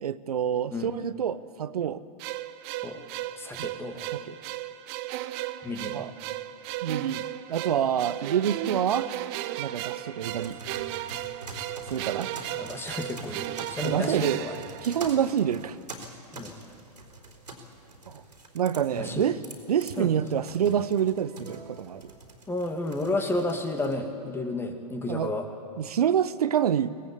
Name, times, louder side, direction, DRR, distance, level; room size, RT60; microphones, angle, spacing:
voice 1, 0.0-2.0 3.6-3.7 4.1-4.3 5.9-6.1 6.8-9.1 9.6-10.6 11.9-12.3 13.8-14.4 14.8-15.8 18.1-18.2 18.5-19.4 19.7-22.1 25.1-25.3 25.8-26.9, right 9 dB, 70° right, 15 dB, 0.9 m, -27 dB
sound 1, 2.2-15.5, right 14 dB, 40° right, 0.9 m, -35 dB
voice 2, 3.4-4.1 5.6-6.0 12.5-14.6 16.3-16.6 19.0-19.3 20.0-20.1 22.5-25.5, left 2 dB, 10° left, 5 dB, 2.5 m, -32 dB
sound 2, 10.2-24.0, right 2 dB, 85° right, 3.9 m, -45 dB
23.5 x 19.0 x 8.5 m, 2.4 s
figure-of-eight pair, 105°, 20 cm